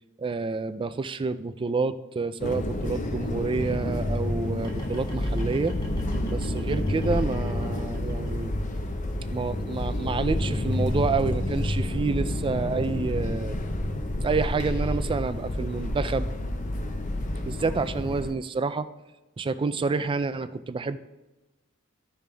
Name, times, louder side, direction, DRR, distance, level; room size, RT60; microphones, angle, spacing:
voice 1, 0.2-5.7 6.3-8.5 9.3-13.6 14.2-16.3 17.4-18.9 19.4-21.0, right 4 dB, 25° right, 12 dB, 0.3 m, -28 dB
sound 1, 2.4-18.3, left 1 dB, 35° left, 0.6 m, -29 dB
sound 2, 4.6-10.5, equal, 15° left, 1.6 m, -50 dB
14.0 x 5.1 x 3.4 m, 1.0 s
head